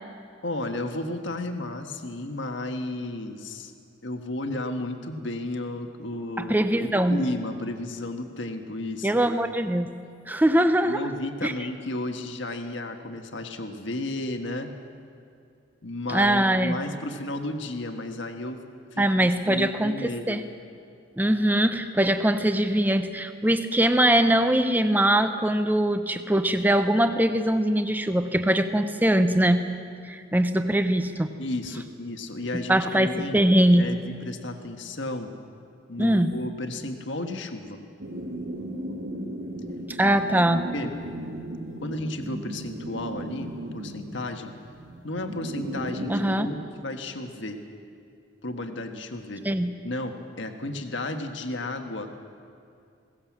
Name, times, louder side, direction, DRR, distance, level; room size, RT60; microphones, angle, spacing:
voice 1, 0.4-3.7 4.0-9.2 10.8-14.7 15.8-18.6 18.9-20.5 31.4-33.4 33.7-35.3 35.9-37.8 40.7-40.9 41.8-44.5 45.0-47.6 48.4-49.5 49.8-52.1, left 2 dB, 65° left, 5 dB, 1.5 m, -33 dB
voice 2, 6.4-7.2 9.0-9.9 10.3-11.0 11.4-11.5 16.1-16.8 19.0-20.4 21.2-29.6 30.1-31.3 32.5-33.9 36.0-36.4 40.0-40.7 46.1-46.5 49.4-49.7, right 1 dB, 10° right, 9 dB, 0.8 m, -22 dB
sound 1, 38.0-46.4, right 1 dB, 75° right, 2.2 m, -36 dB
21.5 x 18.0 x 7.4 m, 2.4 s
head